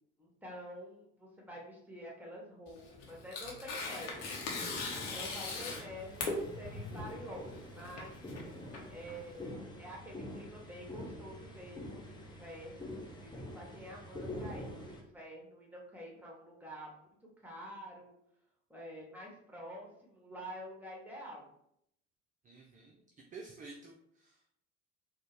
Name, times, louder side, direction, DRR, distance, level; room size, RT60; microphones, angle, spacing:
voice 1, 0.2-4.3 5.1-8.2 8.9-17.1 17.4-18.1 18.7-21.5, equal, 5° right, -2 dB, 1.3 m, -48 dB
Tearing, 2.7-9.4, left 3 dB, 70° left, 0.9 m, -40 dB
sound 1, 4.1-15.0, left 1 dB, 10° left, 0.8 m, -47 dB
voice 2, 22.4-24.5, right 4 dB, 20° right, 1 dB, 0.5 m, -51 dB
4.1 x 2.2 x 3.2 m, 0.72 s
figure-of-eight pair, 55°, 37 cm